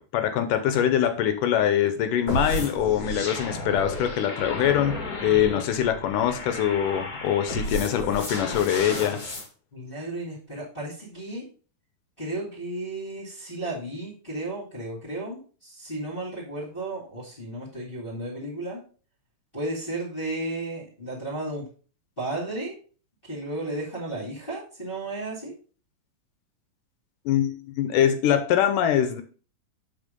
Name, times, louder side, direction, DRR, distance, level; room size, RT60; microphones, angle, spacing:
voice 1, 0.1-5.0 5.2-9.2 27.3-29.2, left 10 dB, 75° left, 9 dB, 2.2 m, -23 dB
sound 1, 2.3-9.5, left 1 dB, 35° left, 1.7 m, -32 dB
voice 2, 9.7-11.5 12.2-18.8 19.5-21.7 22.2-22.7 23.3-25.5, right 2 dB, 15° left, -8 dB, 2.4 m, -33 dB
7.2 x 4.8 x 5.2 m, 0.40 s
omnidirectional pair, 4.0 m